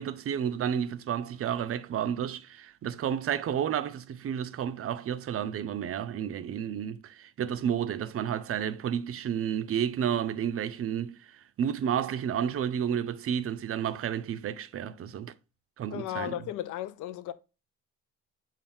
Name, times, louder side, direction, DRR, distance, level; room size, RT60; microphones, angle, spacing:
voice 1, 0.0-15.3 15.8-16.5, right 9 dB, 50° right, 0.5 m, -31 dB
voice 2, 15.9-17.3, left 12 dB, 80° left, 0.5 m, -35 dB
5.5 x 2.6 x 3.4 m
cardioid pair, 90°, 30 cm